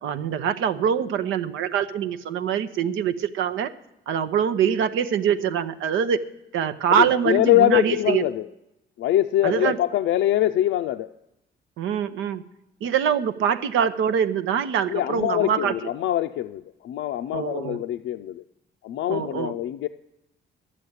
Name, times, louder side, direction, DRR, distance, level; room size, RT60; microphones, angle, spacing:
voice 1, 0.0-3.7 4.1-6.2 6.5-8.3 9.4-9.8 11.8-12.5 12.8-15.7 17.3-17.8 19.1-19.5, right 8 dB, 80° right, 9 dB, 0.7 m, -24 dB
voice 2, 7.3-8.4 9.0-11.1 14.9-18.4 18.8-19.9, left 13 dB, 75° left, 5 dB, 0.5 m, -23 dB
12.0 x 7.4 x 8.0 m, 0.88 s
cardioid pair, 90°, 20 cm